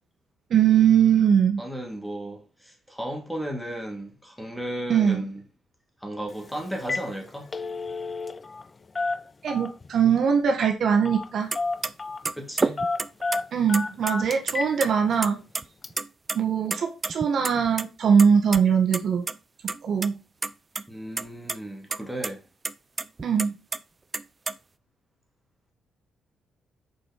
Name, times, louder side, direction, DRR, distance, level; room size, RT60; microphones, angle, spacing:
voice 1, 0.5-1.6 4.9-5.2 9.4-11.5 13.5-15.4 16.3-19.2 19.8-20.1 23.2-23.5, right 7 dB, 60° right, 1.6 m, -21 dB
voice 2, 1.6-5.4 6.0-7.5 12.4-12.8 20.9-22.4, right 1 dB, ahead, 2.1 m, -34 dB
Telephone, 6.3-6.4 6.7-7.1 7.4-8.7 8.9-9.9 11.0-11.3 11.5-12.2 12.8-14.7 15.1-15.2 15.8-16.0, left 3 dB, 30° left, 0.4 m, -30 dB
sound 1, 11.5-11.6 11.8-11.9 12.3-13.4 13.7-14.5 14.8-14.9 15.2-15.6 15.9-16.4 16.7-17.9 18.2-18.6 18.9-19.0 19.3-19.4 19.7-20.1 20.4-20.9 21.2-21.6 21.9-22.0 22.2-22.3 22.6-23.8 24.1-24.5, right 3 dB, 30° right, 0.4 m, -29 dB
6.6 x 5.0 x 4.2 m
cardioid pair, 90°, 0 cm